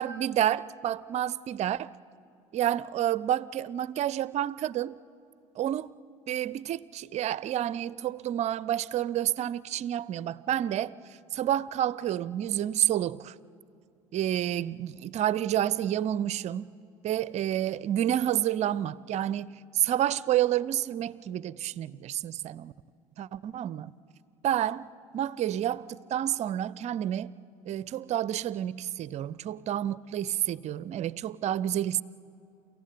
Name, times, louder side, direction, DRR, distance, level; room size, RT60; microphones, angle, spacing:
voice 1, 0.0-1.9 2.5-5.0 5.6-5.9 6.3-10.9 11.3-13.3 14.1-16.7 17.0-22.7 23.2-23.9 24.4-27.3 27.7-32.0, right 11 dB, 40° right, 0.6 m, -29 dB
29.0 x 15.5 x 9.3 m
figure-of-eight pair, 65°, 17 cm